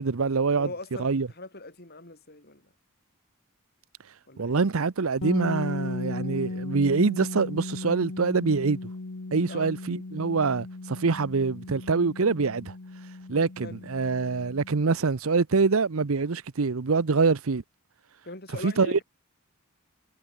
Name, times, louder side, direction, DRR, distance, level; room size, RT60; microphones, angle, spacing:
voice 1, 0.0-0.7 1.0-1.3 4.4-8.8 9.3-12.7 13.3-17.6 18.6-19.0, right 4 dB, 70° right, 0.7 m, -25 dB
voice 2, 0.6-2.7 4.3-4.6 9.5-9.7 13.6-13.8 18.2-19.0, left 2 dB, 45° left, 6.1 m, -41 dB
sound 1, 5.2-15.0, left 2 dB, 70° left, 1.1 m, -37 dB
head